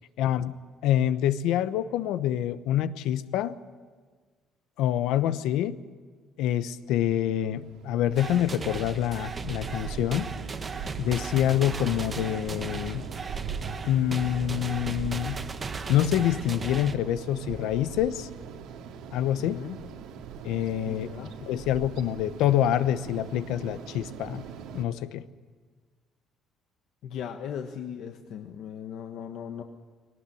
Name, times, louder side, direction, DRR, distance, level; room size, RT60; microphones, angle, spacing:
voice 1, 0.2-0.5 0.8-3.6 4.8-5.8 6.4-10.3 11.0-13.0 13.8-15.4 15.9-18.3 19.1-19.6 20.4-21.1 21.5-24.4 24.7-25.2, left 11 dB, 80° left, 13 dB, 1.0 m, -26 dB
sound 1, 6.9-24.9, right 7 dB, 80° right, 2.2 m, -41 dB
sound 2, 8.2-17.0, right 4 dB, 25° right, 1.0 m, -36 dB
voice 2, 19.4-19.8 20.8-21.3 27.0-29.6, left 8 dB, 65° left, 5 dB, 1.3 m, -38 dB
21.5 x 18.5 x 9.9 m, 1.5 s
cardioid pair, 155°, 0 cm